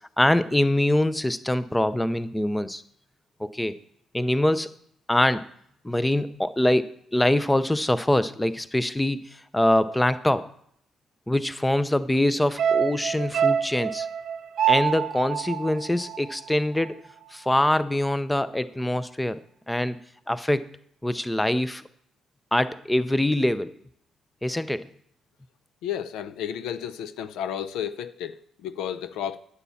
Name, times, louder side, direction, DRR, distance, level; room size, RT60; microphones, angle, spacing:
voice 1, 0.2-2.8 3.4-3.8 4.1-4.7 5.1-5.5 5.8-10.5 11.3-14.1 14.7-17.0 17.3-19.4 19.7-20.0 20.3-20.7 21.0-21.8 22.5-23.7 24.4-24.9, left 1 dB, 10° left, 0.6 m, -24 dB
sound 1, 12.6-17.0 17.3-17.4, right 8 dB, 70° right, 0.8 m, -26 dB
voice 2, 25.8-29.4, left 9 dB, 90° left, 0.5 m, -32 dB
9.7 x 8.4 x 7.1 m
cardioid pair, 90°, 0 cm